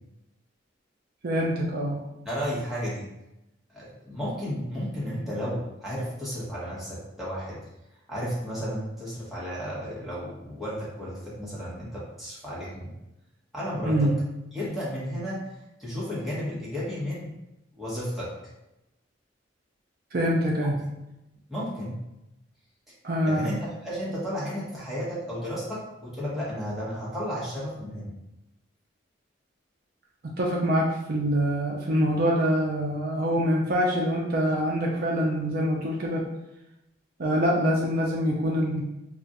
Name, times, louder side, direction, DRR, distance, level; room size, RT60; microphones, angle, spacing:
voice 1, 1.2-2.0 13.8-14.2 20.1-20.7 23.0-23.5 30.2-36.3 37.2-38.8, equal, 50° right, -2 dB, 0.5 m, -25 dB
voice 2, 2.2-3.0 3.7-7.6 8.1-12.9 13.5-14.1 14.5-15.4 15.8-17.3 17.7-18.3 20.8-20.9 21.5-22.0 23.2-23.6 23.8-28.1, equal, ahead, -9 dB, 1.0 m, -33 dB
2.4 x 2.4 x 4.0 m, 0.91 s
head